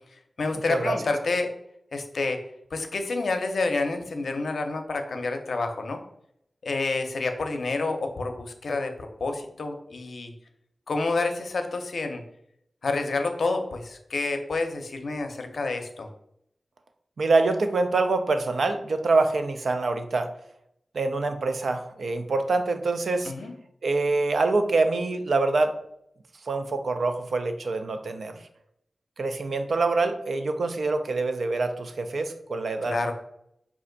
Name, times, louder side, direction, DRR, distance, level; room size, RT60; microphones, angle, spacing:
voice 1, 0.4-1.5 1.9-2.4 2.7-6.0 6.6-10.3 10.9-12.2 12.8-16.1 23.3-23.5 32.9-33.1, left 3 dB, 85° left, 5 dB, 0.5 m, -28 dB
voice 2, 17.2-20.3 20.9-23.3 23.8-25.7 26.5-28.4 29.2-33.0, right 3 dB, 90° right, 7 dB, 0.4 m, -25 dB
4.3 x 2.5 x 3.8 m, 0.75 s
wide cardioid pair, 70°, 0 cm